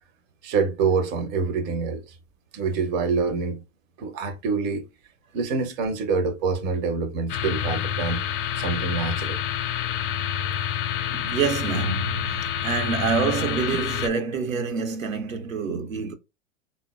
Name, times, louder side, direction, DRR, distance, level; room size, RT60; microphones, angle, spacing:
voice 1, 0.4-2.1 2.5-3.6 4.0-4.9 5.3-8.2 8.6-9.4, right 4 dB, 25° right, 0.5 m, -26 dB
sound 1, 7.3-14.1, left 10 dB, 45° left, 0.5 m, -28 dB
voice 2, 11.1-16.1, right 5 dB, 85° right, 0.7 m, -27 dB
3.5 x 2.1 x 2.2 m
hypercardioid pair, 105°, 39 cm